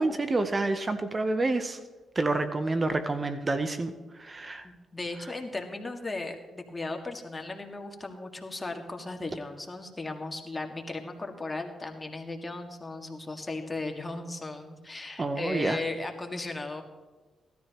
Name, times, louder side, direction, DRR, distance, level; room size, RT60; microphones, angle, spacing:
voice 1, 0.0-1.8 2.2-3.9 4.2-4.7 15.2-15.8, right 2 dB, 35° right, 9 dB, 0.9 m, -28 dB
voice 2, 4.6-16.8, left 2 dB, 25° left, 3 dB, 1.9 m, -36 dB
17.0 x 13.0 x 3.0 m, 1.3 s
supercardioid pair, 60°, 0 cm